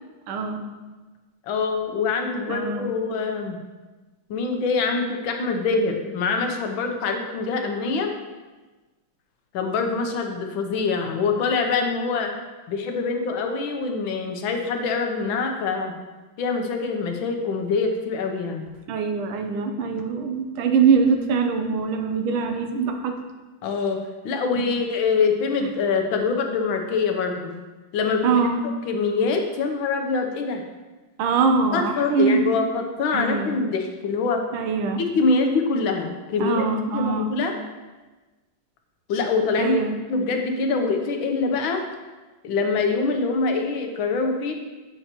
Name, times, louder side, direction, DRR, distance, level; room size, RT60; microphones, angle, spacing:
voice 1, 0.3-0.6 2.5-3.0 18.9-23.1 24.6-24.7 25.6-25.7 28.2-28.6 31.2-32.4 33.1-33.6 34.5-35.0 36.4-37.3 39.6-40.0, right 5 dB, 90° right, 5 dB, 1.6 m, -23 dB
voice 2, 1.4-3.6 4.3-8.1 9.5-12.3 12.7-15.9 16.4-18.6 23.6-27.5 27.9-28.4 28.9-30.6 31.7-34.4 35.1-36.6 36.9-37.6 39.1-39.8 40.1-41.8 42.4-44.5, left 4 dB, 75° left, 4 dB, 1.6 m, -24 dB
8.5 x 6.7 x 2.9 m, 1.2 s
omnidirectional pair, 2.2 m